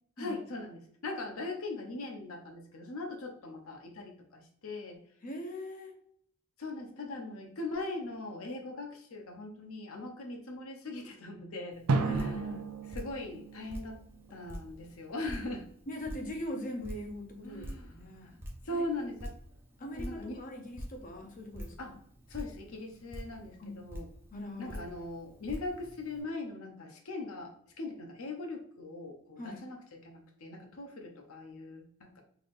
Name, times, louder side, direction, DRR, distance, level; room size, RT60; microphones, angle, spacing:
voice 1, 0.2-5.0 6.6-12.4 12.9-14.0 14.3-15.7 17.4-18.0 18.2-18.3 18.6-19.3 19.9-20.4 21.8-21.9 22.3-24.1 24.6-32.2, left 2 dB, 75° left, 3 dB, 0.7 m, -40 dB
voice 2, 5.2-6.0 12.0-12.6 15.9-18.4 18.7-18.8 19.8-22.0 23.6-23.8 24.3-24.8 29.4-29.6, left 1 dB, 35° left, 3 dB, 0.7 m, -41 dB
Drip, 11.7-26.2, equal, 10° right, 0.6 m, -47 dB
Drum, 11.9-14.6, right 3 dB, 85° right, 0.5 m, -34 dB
3.8 x 3.3 x 2.5 m, 0.64 s
head